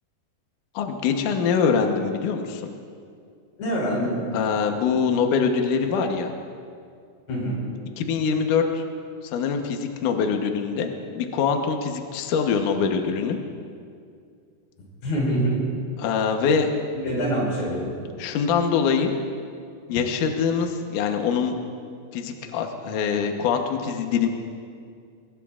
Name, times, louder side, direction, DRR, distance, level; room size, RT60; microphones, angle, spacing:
voice 1, 0.7-2.6 4.3-6.3 8.0-8.8 9.3-10.9 11.1-13.4 16.0-16.7 18.2-19.1 19.9-21.6 22.1-24.3, left 6 dB, 65° left, 4 dB, 2.2 m, -23 dB
voice 2, 3.6-4.2 7.3-7.6 15.0-15.7 16.9-17.9, right 1 dB, 90° left, -4 dB, 7.0 m, -25 dB
23.0 x 22.0 x 2.5 m, 2.3 s
omnidirectional pair, 4.6 m